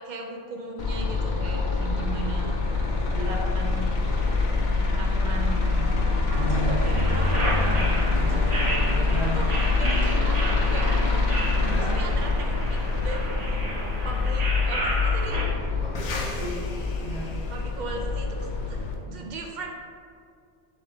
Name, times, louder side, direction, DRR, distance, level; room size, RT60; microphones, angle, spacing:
voice 1, 0.0-2.6 3.1-4.1 4.7-5.9 6.3-7.5 9.3-11.0 11.7-13.6 14.0-15.4 17.5-19.7, right 3 dB, 55° right, 1 dB, 0.5 m, -37 dB
sound 1, 0.8-18.9, left 3 dB, 60° left, 0.5 m, -25 dB
voice 2, 3.1-3.5 6.2-6.8 7.3-9.4 11.6-12.0 15.8-16.6 17.0-17.3 19.1-19.2, left 1 dB, 40° left, -10 dB, 1.1 m, -34 dB
sound 2, 6.3-17.8, right 1 dB, 75° right, 0.9 m, -40 dB
sound 3, 6.8-15.4, right 1 dB, 40° right, 0.9 m, -32 dB
3.6 x 3.2 x 3.3 m, 2.4 s
omnidirectional pair, 1.2 m